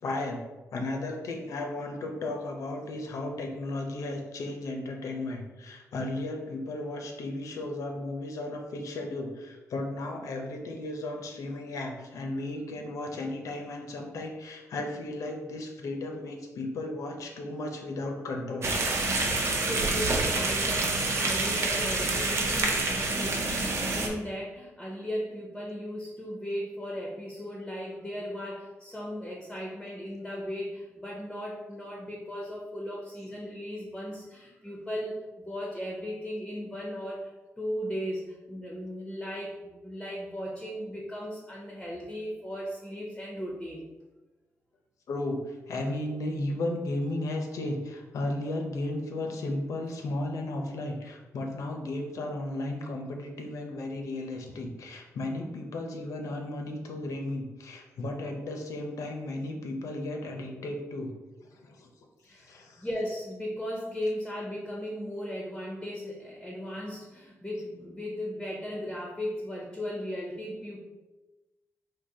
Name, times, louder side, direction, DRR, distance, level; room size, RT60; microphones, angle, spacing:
voice 1, 0.0-0.4 0.7-18.8 45.1-61.1 61.5-61.9 62.2-62.9, left 2 dB, 80° left, 3 dB, 0.6 m, -34 dB
sound 1, 18.6-24.1, right 3 dB, 55° right, 0.5 m, -27 dB
voice 2, 19.2-43.9 62.3-70.8, equal, 5° left, -2 dB, 0.5 m, -37 dB
3.9 x 2.7 x 2.7 m, 1.1 s
wide cardioid pair, 140°, 5 cm